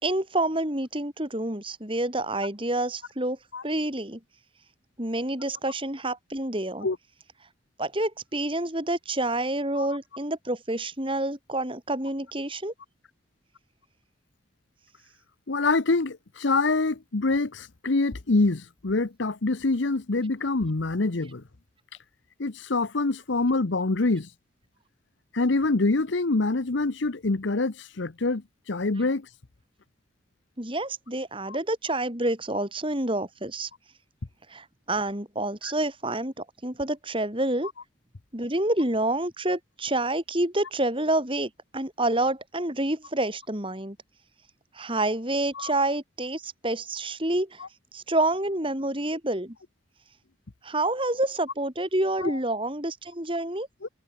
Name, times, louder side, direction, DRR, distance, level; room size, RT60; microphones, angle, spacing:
voice 1, 0.0-3.4 3.6-4.2 5.0-6.9 7.8-12.7 30.6-33.7 34.5-37.7 38.3-44.0 44.7-47.6 47.9-49.6 50.6-53.7, right 1 dB, 25° right, 4.2 m, -28 dB
voice 2, 15.5-21.4 22.4-24.3 25.3-29.3 31.5-31.6 35.6-35.7 45.5-45.7 52.2-52.4 53.8-53.9, left 3 dB, 70° left, 0.9 m, -25 dB
head